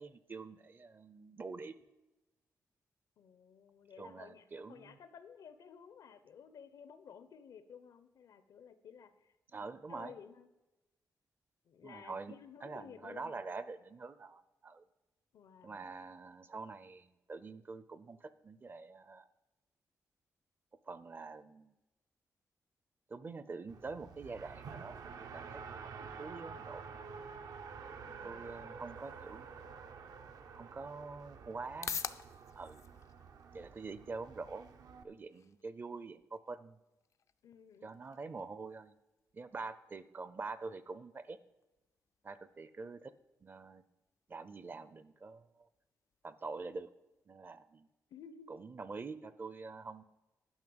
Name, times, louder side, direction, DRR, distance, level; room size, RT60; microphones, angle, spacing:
voice 1, 0.0-1.8 4.0-5.0 9.5-10.2 11.8-14.8 15.6-19.3 20.8-21.7 23.1-26.8 28.2-29.6 30.5-32.0 32.6-32.8 33.5-34.6 35.0-36.8 37.8-38.9 39.3-41.4 42.2-43.1 43.4-43.8 44.3-45.7 46.2-46.9 47.3-47.9 48.5-50.0, right 4 dB, 35° right, 15 dB, 0.5 m, -46 dB
voice 2, 3.2-10.5 11.7-13.3 15.3-15.8 28.1-28.8 37.4-37.9 48.1-48.5, left 7 dB, 80° left, 12 dB, 0.8 m, -55 dB
Race car auto racing, 23.7-35.0, right 5 dB, 75° right, 0.8 m, -49 dB
sound 1, 30.4-47.3, left 7 dB, 55° left, 0.4 m, -52 dB
11.0 x 5.4 x 7.8 m, 1.0 s
cardioid pair, 105°, 6 cm